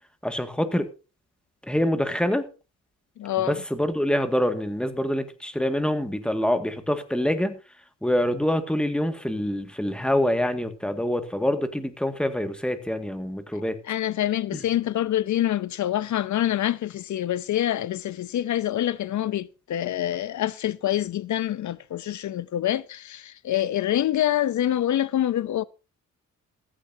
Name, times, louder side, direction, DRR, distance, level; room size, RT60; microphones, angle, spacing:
voice 1, 0.2-0.9 1.7-2.5 3.4-7.6 8.0-13.8 14.5-14.6, left 1 dB, 5° left, 2.0 m, -25 dB
voice 2, 3.2-3.6 13.9-25.6, left 12 dB, 70° left, 0.6 m, -26 dB
15.5 x 14.5 x 2.8 m
wide cardioid pair, 125°, 30 cm